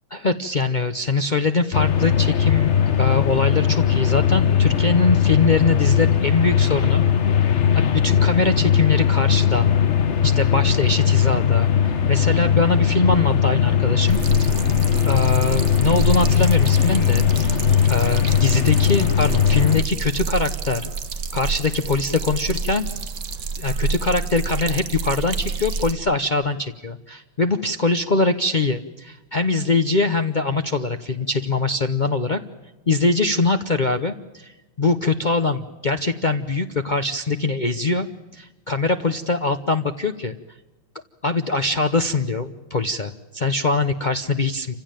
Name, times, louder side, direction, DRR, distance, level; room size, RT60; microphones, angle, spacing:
voice 1, 0.1-7.0 7.7-9.7 10.2-14.2 15.1-17.5 17.9-20.9 21.3-22.8 23.6-32.4 32.9-34.5 34.8-38.1 38.3-40.3 41.2-44.7, left 3 dB, 75° left, 7 dB, 0.4 m, -22 dB
sound 1, 1.7-19.8, left 8 dB, 45° left, 1.1 m, -19 dB
sound 2, 14.1-25.9, right 5 dB, 50° right, 1.5 m, -28 dB
28.0 x 16.0 x 8.9 m, 1.1 s
omnidirectional pair, 2.2 m